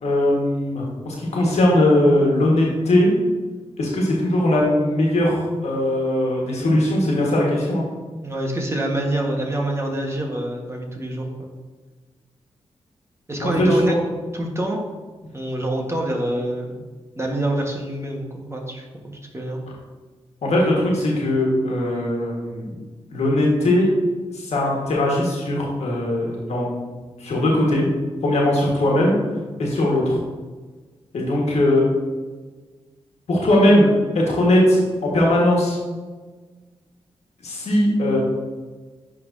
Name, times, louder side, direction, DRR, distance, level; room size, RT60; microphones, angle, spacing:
voice 1, 0.0-3.1 3.8-7.8 13.4-14.0 20.4-22.6 23.1-23.9 24.3-26.7 27.2-27.8 28.2-29.2 29.6-30.2 31.1-31.8 33.3-33.9 34.1-35.8 37.4-38.2, left 1 dB, 75° left, -3 dB, 1.7 m, -19 dB
voice 2, 8.2-11.5 13.3-13.9 14.3-14.8 15.3-16.9 17.2-18.9 19.3-19.6, right 1 dB, 25° right, 0 dB, 1.5 m, -26 dB
10.0 x 3.7 x 2.7 m, 1.3 s
cardioid pair, 50°, 11 cm